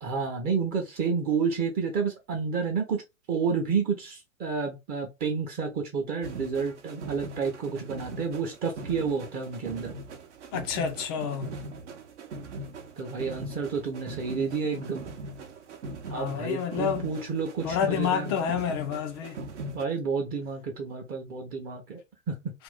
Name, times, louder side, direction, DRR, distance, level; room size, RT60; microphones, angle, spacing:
voice 1, 0.0-3.0 3.3-9.9 13.0-15.1 16.1-18.3 19.7-22.0 22.3-22.4, right 5 dB, 25° right, 0.6 m, -30 dB
sound 1, 6.2-19.8, right 2 dB, 65° right, 0.8 m, -41 dB
voice 2, 10.5-11.5 16.1-17.1 17.6-19.4, left 8 dB, 20° left, 0.3 m, -29 dB
2.6 x 2.3 x 3.4 m
figure-of-eight pair, 100°, 39 cm